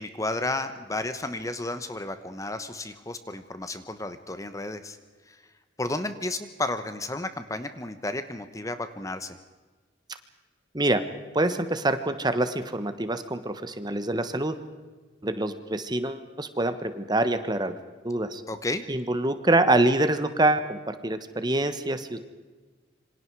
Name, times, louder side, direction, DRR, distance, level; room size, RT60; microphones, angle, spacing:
voice 1, 0.0-5.0 5.3-5.4 5.8-9.4 18.5-18.9, left 2 dB, 15° left, 10 dB, 1.1 m, -32 dB
voice 2, 11.3-14.6 15.2-17.7 18.0-18.4 18.9-22.2, right 2 dB, 20° right, 10 dB, 1.3 m, -25 dB
27.0 x 25.5 x 4.8 m, 1.3 s
head